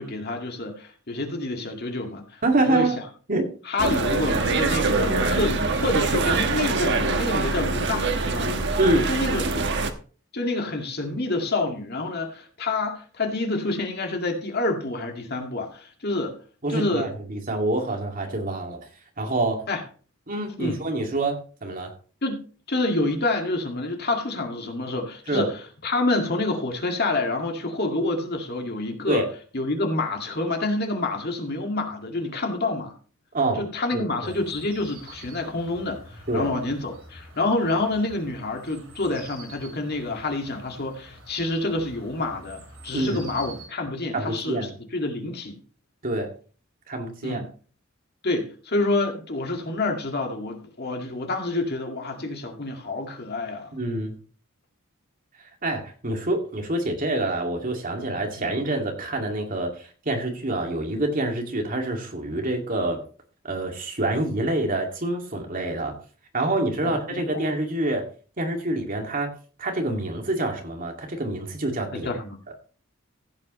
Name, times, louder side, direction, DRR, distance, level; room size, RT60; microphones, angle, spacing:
voice 1, 0.0-2.9 3.6-8.7 9.1-9.7 10.3-16.4 16.7-17.1 19.7-19.8 20.6-20.8 22.2-22.4 22.7-29.3 29.5-33.0 33.6-45.6 47.2-47.5 48.2-53.7 58.4-58.5 66.8-67.5 71.9-72.4, left 2 dB, 50° left, 2.1 m, -28 dB
voice 2, 2.4-3.0 3.3-3.5 8.8-9.1 16.6-18.8 19.2-19.6 20.3-21.9 25.3-25.5 29.1-29.3 33.3-33.6 33.9-34.1 36.3-36.5 42.9-43.2 44.1-44.7 46.0-46.3 46.9-47.4 53.7-54.2 55.6-63.0 63.4-66.0 66.3-68.0 68.4-69.3 69.6-72.1, right 2 dB, 40° right, 2.4 m, -26 dB
sound 1, 3.8-9.9, right 3 dB, 55° right, 1.2 m, -24 dB
sound 2, 34.3-43.7, right 2 dB, 85° right, 6.7 m, -47 dB
15.5 x 8.3 x 3.2 m
head